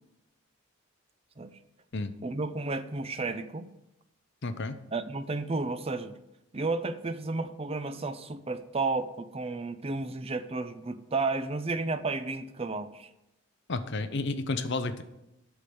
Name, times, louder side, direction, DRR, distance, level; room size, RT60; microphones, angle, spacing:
voice 1, 2.2-3.7 4.9-6.2 6.5-13.1, right 3 dB, 25° right, 11 dB, 0.5 m, -32 dB
voice 2, 4.4-4.7 13.7-15.0, left 3 dB, 50° left, 10 dB, 0.7 m, -31 dB
8.4 x 6.1 x 7.0 m, 0.91 s
head